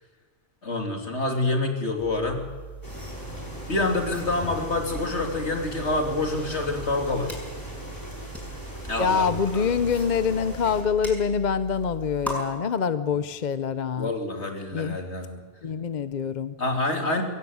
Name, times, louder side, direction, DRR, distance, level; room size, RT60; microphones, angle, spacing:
voice 1, 0.6-2.5 3.7-7.4 8.9-9.8 14.0-15.4 16.6-17.2, left 2 dB, 75° left, 3 dB, 3.3 m, -27 dB
sound 1, 2.0-12.4, right 3 dB, ahead, 6.7 m, -40 dB
sound 2, 2.8-10.8, left 1 dB, 15° left, 6.0 m, -39 dB
voice 2, 9.0-14.1 14.7-15.0 15.6-16.6, left 6 dB, 45° left, 13 dB, 0.8 m, -25 dB
22.5 x 16.0 x 9.5 m, 1.5 s
omnidirectional pair, 1.2 m